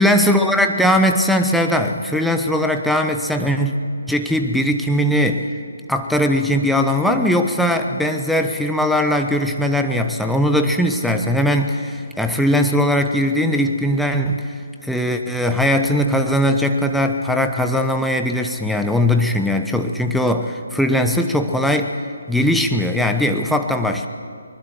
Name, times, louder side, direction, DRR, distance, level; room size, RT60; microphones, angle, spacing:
voice 1, 0.0-3.7 4.1-5.5 5.9-14.5 14.8-21.9 22.3-24.1, left 1 dB, ahead, 4 dB, 1.0 m, -19 dB
23.5 x 20.5 x 7.6 m, 2.2 s
figure-of-eight pair, 145°, 0 cm